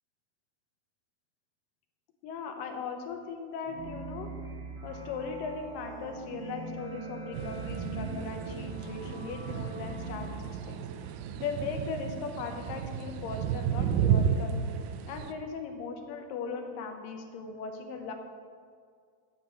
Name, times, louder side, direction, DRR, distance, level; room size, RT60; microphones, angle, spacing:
voice 1, 2.2-4.3 4.8-10.8 11.4-14.6 15.1-18.1, left 5 dB, 75° left, 4 dB, 2.5 m, -38 dB
sound 1, 3.7-10.3, right 2 dB, 45° right, 2.4 m, -42 dB
sound 2, 7.3-15.3, right 8 dB, 90° right, 1.7 m, -32 dB
8.4 x 5.1 x 7.6 m, 2.2 s
omnidirectional pair, 4.1 m